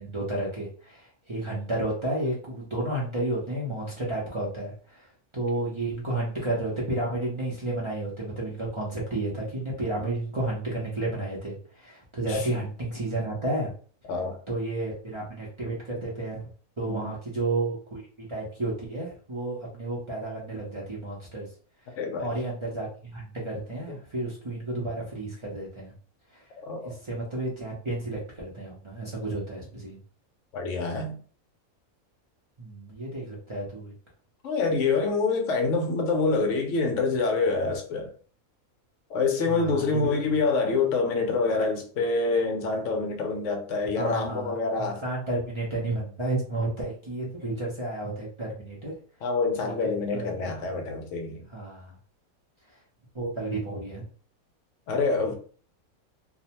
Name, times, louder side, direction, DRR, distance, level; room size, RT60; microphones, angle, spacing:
voice 1, 0.0-5.1 5.3-13.7 14.5-16.5 16.8-18.0 18.3-21.5 22.2-25.9 26.3-26.4 26.8-30.0 32.6-33.9 39.5-40.2 44.0-48.9 49.6-49.7 50.1-50.7 51.5-51.9 53.1-54.0, right 2 dB, 40° right, 0.4 m, -32 dB
voice 2, 22.0-22.3 23.9-24.0 26.6-26.9 30.5-31.2 34.4-38.1 39.1-45.0 49.2-51.4 54.9-55.3, left 4 dB, 65° left, 0.8 m, -26 dB
2.6 x 2.1 x 2.8 m
omnidirectional pair, 1.6 m